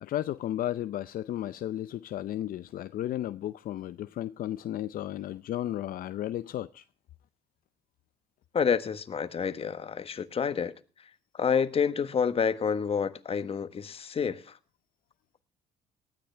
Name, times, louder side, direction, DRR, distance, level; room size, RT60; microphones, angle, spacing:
voice 1, 0.0-6.8, left 12 dB, 55° left, 0.6 m, -34 dB
voice 2, 8.5-10.7 11.0-14.6, left 6 dB, 35° left, 1.2 m, -29 dB
18.5 x 13.0 x 3.4 m
cardioid pair, 110°, 17 cm